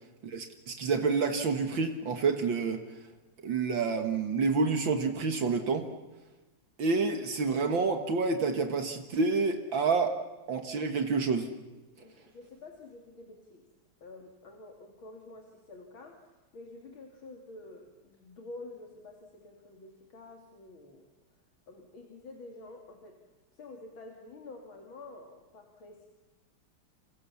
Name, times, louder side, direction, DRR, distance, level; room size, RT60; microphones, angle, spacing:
voice 1, 0.2-2.8 3.4-5.9 6.8-10.2 10.5-11.5, right 4 dB, 70° right, 6 dB, 2.3 m, -28 dB
voice 2, 12.0-13.7 14.0-21.1 21.7-23.2 23.5-26.1, left 2 dB, 80° left, 2 dB, 3.4 m, -49 dB
29.0 x 28.0 x 7.1 m, 1.1 s
omnidirectional pair, 2.2 m